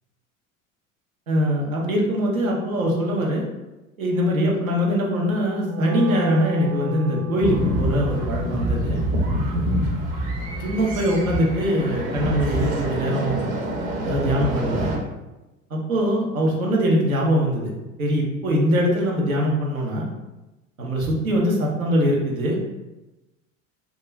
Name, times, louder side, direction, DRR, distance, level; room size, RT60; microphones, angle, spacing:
voice 1, 1.3-3.4 4.0-9.0 10.6-13.5 14.0-14.9 15.7-17.7 18.0-20.0 20.8-22.7, equal, 90° right, -2 dB, 0.7 m, -22 dB
Wind instrument woodwind instrument, 5.5-11.7, left 4 dB, 15° right, 0.3 m, -32 dB
sound 1, 7.4-15.0, right 1 dB, 55° right, 0.8 m, -26 dB
2.3 x 2.2 x 3.0 m, 1.0 s
hypercardioid pair, 75°, 40 cm